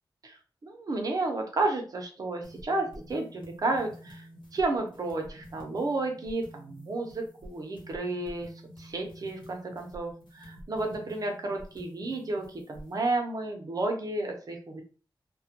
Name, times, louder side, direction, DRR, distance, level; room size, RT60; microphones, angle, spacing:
voice 1, 0.2-4.3 4.5-8.5 8.8-14.8, right 2 dB, 50° right, 3 dB, 0.6 m, -32 dB
sound 1, 2.4-13.1, equal, 75° left, 1.0 m, -49 dB
2.2 x 2.1 x 2.8 m, 0.38 s
wide cardioid pair, 130°, 8 cm